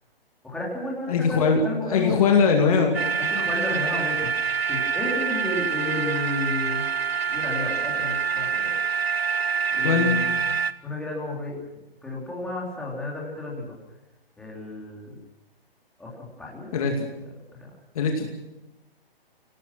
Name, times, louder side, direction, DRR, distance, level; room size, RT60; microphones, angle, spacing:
voice 1, 0.4-2.3 3.3-4.3 4.6-8.7 9.7-10.5 10.8-11.6 12.0-13.8 14.4-15.1 16.0-16.9 17.6-17.7, left 2 dB, 5° left, -4 dB, 3.6 m, -32 dB
voice 2, 1.1-1.6 1.9-3.0 9.8-10.2 16.7-17.1 17.9-18.3, left 5 dB, 35° left, 2 dB, 2.5 m, -21 dB
sound 1, 2.9-10.7, right 6 dB, 80° right, 1.2 m, -26 dB
26.0 x 18.0 x 6.2 m, 0.97 s
hypercardioid pair, 155°, 30 cm